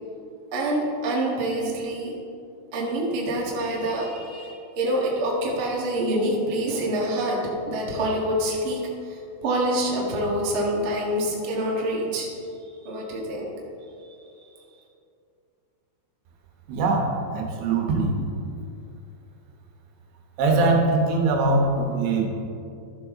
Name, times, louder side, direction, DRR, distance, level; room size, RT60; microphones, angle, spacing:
voice 1, 0.5-2.1 2.7-7.4 7.7-8.8 9.0-12.3 12.7-13.5 14.5-14.6, right 1 dB, 65° right, -3 dB, 1.2 m, -26 dB
voice 2, 16.7-18.2 20.4-22.3, right 3 dB, 85° right, 1 dB, 3.5 m, -22 dB
13.5 x 7.0 x 3.7 m, 2.6 s
omnidirectional pair, 5.1 m